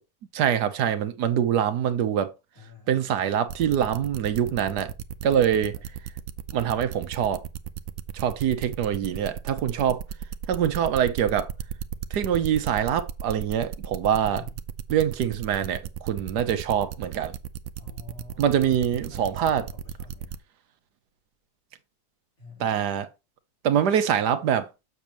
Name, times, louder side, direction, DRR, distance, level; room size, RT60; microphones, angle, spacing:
voice 1, 0.3-2.3 2.9-4.9 5.2-5.8 6.5-7.4 8.1-10.0 10.5-11.5 12.1-14.4 14.9-17.3 18.4-19.7 22.6-23.1 23.6-24.7, right 9 dB, 80° right, 1.5 m, -24 dB
voice 2, 2.6-3.3 5.6-5.9 14.3-14.6 17.8-18.8 19.1-20.4 22.4-22.8, left 4 dB, 55° left, 4.0 m, -49 dB
sound 1, 3.5-20.4, right 9 dB, 65° right, 1.0 m, -35 dB
7.3 x 6.9 x 2.9 m
omnidirectional pair, 1.7 m